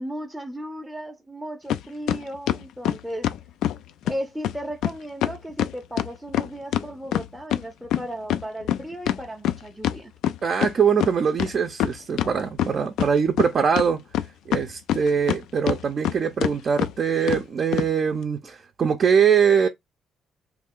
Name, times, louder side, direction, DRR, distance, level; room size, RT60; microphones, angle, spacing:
voice 1, 0.0-3.3 4.0-10.1, right 1 dB, ahead, 0.6 m, -35 dB
sound 1, 1.7-1.8 2.1-3.8 4.1-4.2 4.4-4.6 4.8-4.9 5.2-7.6 7.9-10.7 11.0-11.1 11.4-12.3 12.6-13.5 13.8-15.4 15.7-16.1 16.4-16.5 16.8-16.9 17.3-17.4 17.7-17.9, left 11 dB, 85° left, 0.3 m, -24 dB
voice 2, 10.4-14.0 14.5-19.7, right 6 dB, 50° right, 0.5 m, -22 dB
3.2 x 2.4 x 3.6 m
cardioid pair, 90°, 0 cm